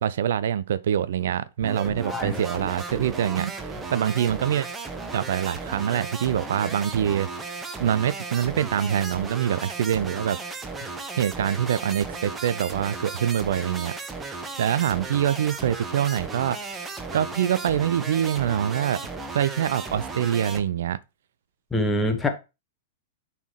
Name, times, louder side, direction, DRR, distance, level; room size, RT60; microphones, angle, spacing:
voice 1, 0.0-4.7 5.1-7.3 7.8-10.4 11.2-13.9 14.2-14.3 14.6-19.0 19.3-21.0, right 9 dB, 60° right, 0.4 m, -25 dB
sound 1, 1.6-20.6, right 3 dB, 15° right, 1.0 m, -35 dB
voice 2, 2.0-2.4 21.7-22.3, left 1 dB, 10° left, 1.5 m, -25 dB
10.0 x 4.2 x 3.1 m
figure-of-eight pair, 105°, 0 cm